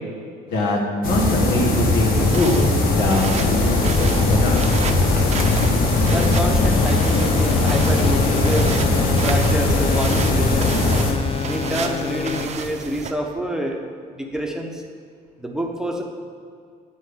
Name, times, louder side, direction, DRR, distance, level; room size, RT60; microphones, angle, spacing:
voice 1, 0.5-0.8 1.1-2.6 2.9-4.6, left 2 dB, 85° left, -1 dB, 1.6 m, -23 dB
sound 1, 1.0-11.1, left 2 dB, 60° left, 1.4 m, -19 dB
sound 2, 2.1-13.1, right 6 dB, 40° right, 0.6 m, -32 dB
sound 3, 3.4-12.5, left 5 dB, 35° left, 0.6 m, -26 dB
voice 2, 6.0-8.7 9.2-10.8 11.5-13.8 14.1-14.8 15.4-16.0, right 1 dB, 5° right, 1 dB, 0.8 m, -27 dB
8.6 x 7.5 x 3.7 m, 2.2 s
cardioid pair, 110°, 17 cm